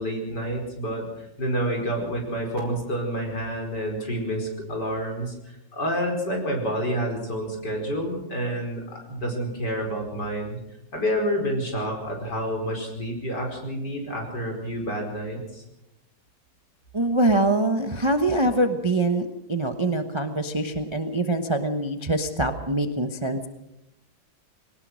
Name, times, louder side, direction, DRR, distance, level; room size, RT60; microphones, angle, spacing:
voice 1, 0.0-10.6 10.9-15.6, equal, 55° left, 1 dB, 5.4 m, -29 dB
voice 2, 16.9-23.5, right 2 dB, 20° right, 7 dB, 0.9 m, -24 dB
22.0 x 19.0 x 6.4 m, 0.90 s
omnidirectional pair, 2.1 m